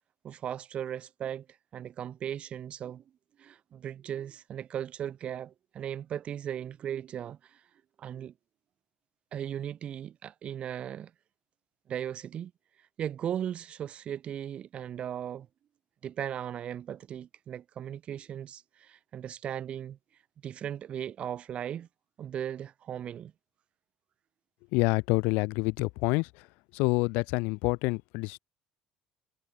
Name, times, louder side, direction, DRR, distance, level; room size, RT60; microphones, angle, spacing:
voice 1, 0.2-1.5 1.7-3.0 3.4-7.6 8.0-8.3 9.3-11.1 11.9-12.5 13.0-15.5 16.0-20.0 20.4-21.9 22.2-23.3, right 9 dB, 45° right, 3.0 m, -37 dB
voice 2, 24.7-26.3 26.7-28.4, left 27 dB, 85° left, 3.8 m, -27 dB
cardioid pair, 110°, 3 cm